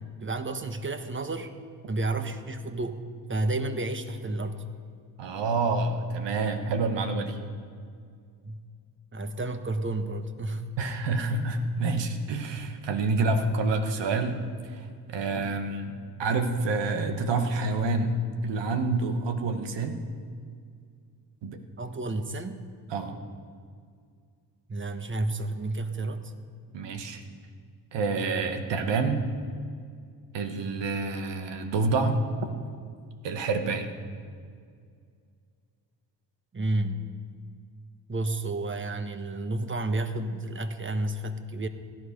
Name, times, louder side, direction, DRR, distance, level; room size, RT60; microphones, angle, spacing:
voice 1, 0.2-1.5 1.9-3.0 3.3-4.6 8.4-8.6 9.1-10.7 21.8-22.6 24.7-26.3 36.5-37.1 38.1-41.7, right 2 dB, 25° right, 9 dB, 1.3 m, -31 dB
voice 2, 5.2-7.4 10.8-14.4 14.7-20.0 21.4-21.6 22.9-23.2 26.7-27.2 27.9-29.3 30.3-32.2 33.2-33.9, right 3 dB, 75° right, 6 dB, 1.5 m, -28 dB
16.5 x 11.5 x 5.3 m, 2.1 s
supercardioid pair, 65°, 43 cm